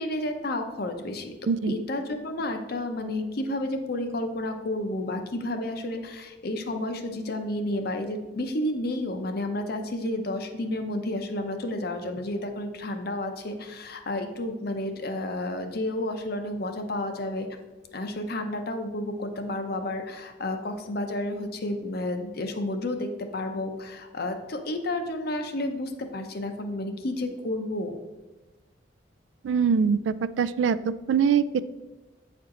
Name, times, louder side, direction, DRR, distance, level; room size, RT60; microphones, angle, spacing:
voice 1, 0.0-1.4 1.7-17.5 17.9-28.0, left 1 dB, 55° left, 6 dB, 0.7 m, -31 dB
voice 2, 29.4-31.6, right 6 dB, 80° right, 14 dB, 0.3 m, -23 dB
8.2 x 4.4 x 3.8 m, 1.1 s
head